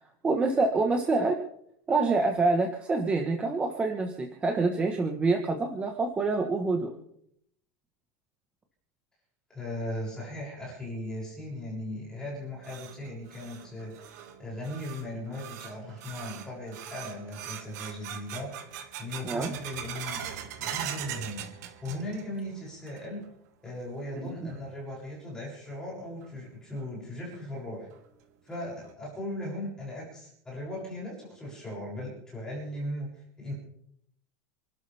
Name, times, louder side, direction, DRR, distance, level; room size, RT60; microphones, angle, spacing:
voice 1, 0.2-1.4 1.9-6.9 19.2-19.5, right 3 dB, 15° right, 3 dB, 1.3 m, -26 dB
voice 2, 9.5-18.5 19.0-21.5 21.8-23.2 23.6-27.9 28.4-33.5, left 1 dB, 5° left, -5 dB, 7.1 m, -38 dB
sound 1, 12.3-22.4 22.7-23.3 23.7-23.8 24.5-24.6 26.2-26.3 26.8-26.9 27.3-27.4 27.9-28.0 28.5-28.9, right 9 dB, 70° right, 2.1 m, -41 dB
29.0 x 12.5 x 3.5 m, 0.70 s
supercardioid pair, 175°, 9 cm